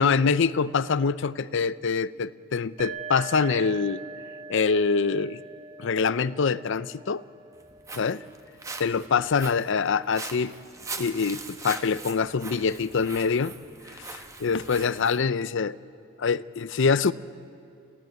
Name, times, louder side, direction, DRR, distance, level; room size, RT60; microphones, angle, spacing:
voice 1, 0.0-4.0 4.5-5.4 5.8-7.2 8.0-8.2 8.8-10.5 10.9-13.5 14.1-15.8 16.2-17.1, left 5 dB, 65° left, 17 dB, 0.5 m, -25 dB
sound 1, 2.8-10.3, right 4 dB, 35° right, 1.5 m, -43 dB
Walk footsteps, 7.5-15.2, right 3 dB, 15° right, 1.4 m, -41 dB
29.0 x 16.0 x 9.3 m, 2.5 s
head